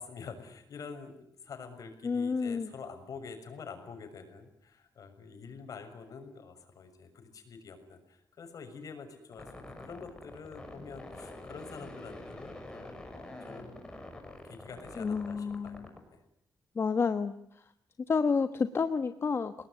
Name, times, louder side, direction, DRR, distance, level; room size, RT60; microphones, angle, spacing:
voice 1, 0.0-13.8 14.2-16.2, left 5 dB, 60° left, 7 dB, 6.7 m, -47 dB
voice 2, 2.0-2.7 15.0-15.9 16.7-17.6 18.1-19.6, left 5 dB, 40° left, 9 dB, 1.3 m, -30 dB
sound 1, 9.3-16.0, left 1 dB, 10° left, 6.2 m, -46 dB
29.0 x 20.0 x 10.0 m, 0.72 s
wide cardioid pair, 145°, 7 cm